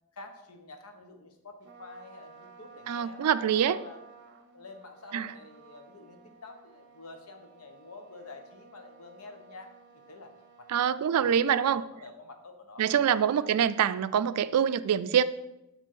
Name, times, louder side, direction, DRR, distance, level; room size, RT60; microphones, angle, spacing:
voice 1, 0.1-4.0 4.5-13.0 13.4-13.5, left 3 dB, 75° left, 5 dB, 1.0 m, -48 dB
Trumpet, 1.6-11.0, right 5 dB, 55° right, 0.8 m, -54 dB
voice 2, 2.9-3.8 5.1-5.3 10.7-11.8 12.8-15.2, right 8 dB, 85° right, 15 dB, 0.4 m, -25 dB
7.5 x 3.5 x 5.5 m, 0.90 s
head